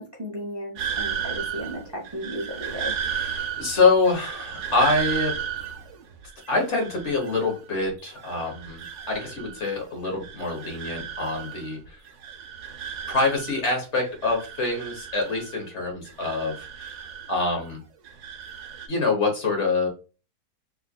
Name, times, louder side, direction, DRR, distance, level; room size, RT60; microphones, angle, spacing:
voice 1, 0.0-2.9, equal, 30° right, -1 dB, 0.5 m, -34 dB
sound 1, 0.8-7.7 8.1-9.8 10.1-11.8 12.1-13.7 14.1-15.7 16.1-17.7 18.0-18.9, right 8 dB, 90° right, 1.2 m, -34 dB
voice 2, 3.0-5.4 6.5-12.0 13.1-17.0 17.3-17.8 18.9-19.9, left 3 dB, 50° left, 1 dB, 1.4 m, -25 dB
3.5 x 3.3 x 2.2 m, 0.33 s
omnidirectional pair, 1.6 m